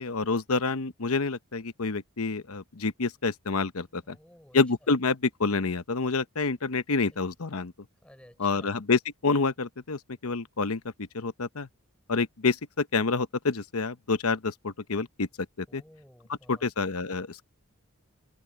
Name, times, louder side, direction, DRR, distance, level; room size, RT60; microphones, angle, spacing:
voice 1, 0.0-4.1 4.5-7.7 8.4-11.7 12.1-15.3 15.7-15.8 16.5-17.5, left 4 dB, 80° left, 1.0 m, -28 dB
voice 2, 4.0-4.6 7.1-7.3 8.0-8.7 15.7-16.7, equal, 5° left, 4.2 m, -55 dB
head